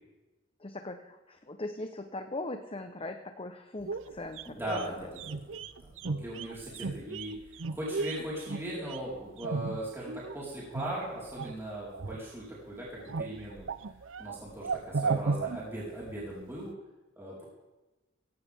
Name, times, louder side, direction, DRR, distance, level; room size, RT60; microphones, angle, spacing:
voice 1, 0.6-5.1, left 2 dB, 30° left, 6 dB, 1.0 m, -40 dB
sound 1, 3.8-10.3 10.7-11.6 11.9-12.6 12.9-16.3 16.5-16.6, right 4 dB, 85° right, 0.7 m, -35 dB
voice 2, 4.5-5.5 5.8-13.6 14.2-16.7 17.2-17.4, right 1 dB, 15° right, -7 dB, 4.8 m, -39 dB
17.5 x 17.0 x 3.7 m, 1.1 s
head